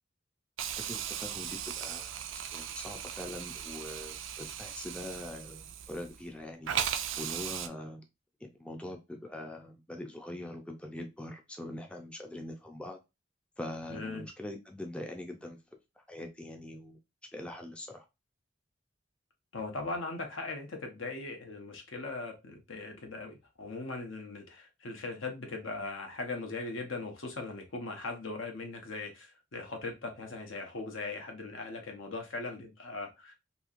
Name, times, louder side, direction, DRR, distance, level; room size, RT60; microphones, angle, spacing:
Hiss, 0.6-6.3 6.6-7.7, right 9 dB, 75° right, 0.4 m, -37 dB
voice 1, 0.7-6.7 7.2-8.0 8.4-13.0 13.6-15.6 16.0-17.0 17.3-18.0, left 1 dB, 5° left, 0.4 m, -43 dB
voice 2, 13.9-14.3 19.5-33.3, left 3 dB, 85° left, 0.9 m, -39 dB
2.9 x 2.7 x 2.4 m
head